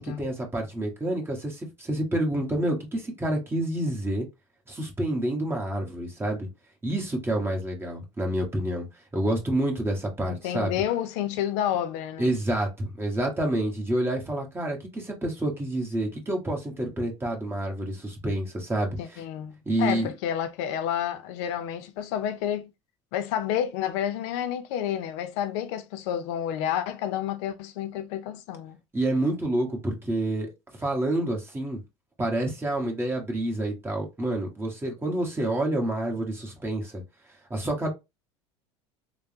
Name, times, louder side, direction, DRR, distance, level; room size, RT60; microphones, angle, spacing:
voice 1, 0.0-4.3 4.7-6.5 6.8-8.9 9.1-10.8 12.2-19.2 19.7-20.1 28.9-31.8 32.2-37.0 37.5-37.9, right 1 dB, 15° right, 1.3 m, -28 dB
voice 2, 10.3-12.3 19.0-22.7 23.1-28.8, left 10 dB, 65° left, 0.5 m, -30 dB
3.2 x 2.0 x 2.7 m
hypercardioid pair, 80°, 16 cm